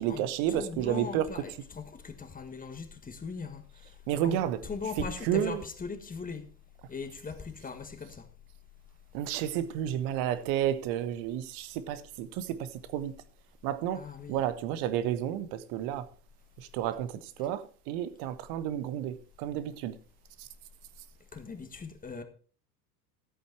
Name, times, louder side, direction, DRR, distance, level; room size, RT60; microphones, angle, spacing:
voice 1, 0.0-1.4 4.1-4.7 5.0-5.6 9.1-13.1 13.6-14.0 14.3-16.1 16.6-19.9 20.4-20.5, right 11 dB, 45° right, 1.3 m, -31 dB
voice 2, 0.6-3.6 4.2-4.4 4.7-6.5 6.9-8.3 13.9-14.4 21.3-22.2, left 5 dB, 15° left, 1.6 m, -39 dB
14.0 x 8.4 x 4.5 m
figure-of-eight pair, 75°, 49 cm